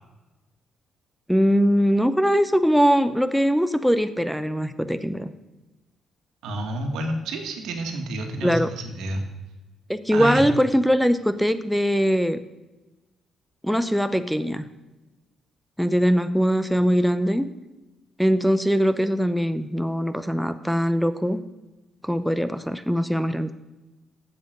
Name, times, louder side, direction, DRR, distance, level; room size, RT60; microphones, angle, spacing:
voice 1, 1.3-5.3 8.4-8.7 9.9-12.4 13.6-14.6 15.8-17.4 18.2-21.4 22.0-23.5, equal, ahead, 12 dB, 0.6 m, -21 dB
voice 2, 6.4-9.2 10.1-10.5, right 1 dB, 85° right, 4 dB, 1.6 m, -29 dB
7.6 x 7.4 x 6.6 m, 1.1 s
cardioid pair, 90°, 0 cm